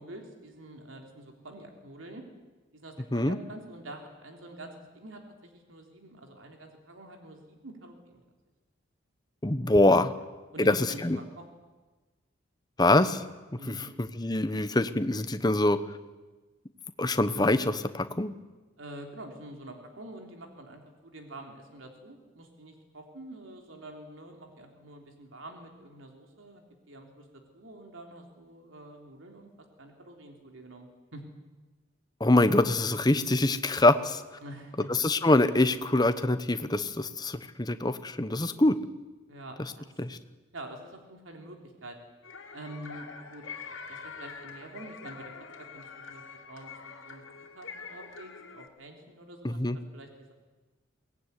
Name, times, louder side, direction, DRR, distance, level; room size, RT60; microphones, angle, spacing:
voice 1, 0.0-2.2 2.7-8.2 10.5-11.4 13.6-13.9 18.8-29.5 29.8-31.2 34.4-34.9 39.3-39.9 40.5-42.0 42.5-43.5 43.9-45.3 45.6-47.2 47.6-49.6 49.9-50.3, right 1 dB, 90° right, 3 dB, 3.3 m, -46 dB
voice 2, 9.4-10.1 10.6-11.2 12.8-13.2 13.7-16.0 17.0-18.3 32.2-34.2 34.9-38.8 40.0-40.2 49.4-49.8, left 2 dB, 20° left, 10 dB, 1.0 m, -24 dB
sound 1, 42.2-48.7, left 5 dB, 85° left, 2.6 m, -45 dB
23.0 x 18.0 x 9.8 m, 1.2 s
head